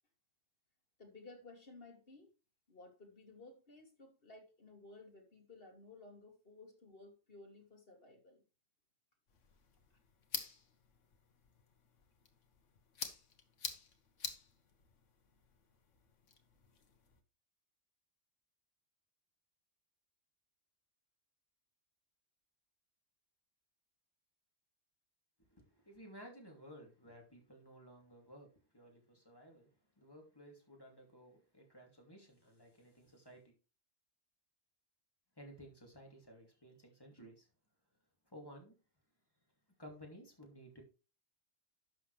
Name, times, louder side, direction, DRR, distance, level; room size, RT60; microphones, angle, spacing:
voice 1, 1.0-2.3 2.7-8.4, left 3 dB, 50° left, 1 dB, 2.8 m, -57 dB
sound 1, 9.3-17.2, left 6 dB, 75° left, 1.6 m, -49 dB
voice 2, 25.5-28.5 28.7-29.7 30.0-33.5 35.4-37.5 38.3-38.7 39.8-40.8, equal, 20° left, 0 dB, 2.6 m, -56 dB
11.5 x 6.6 x 3.3 m, 0.32 s
omnidirectional pair, 1.3 m